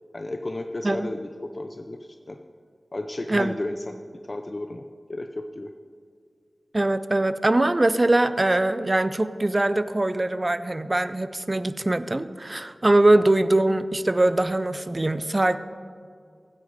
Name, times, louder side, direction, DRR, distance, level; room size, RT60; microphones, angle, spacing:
voice 1, 0.1-2.4 2.9-4.0 4.2-4.8 5.1-5.7, left 1 dB, 40° left, 6 dB, 0.6 m, -33 dB
voice 2, 6.7-15.6, right 2 dB, 35° right, 13 dB, 0.5 m, -22 dB
16.0 x 9.6 x 4.1 m, 2.2 s
wide cardioid pair, 50°, 0 cm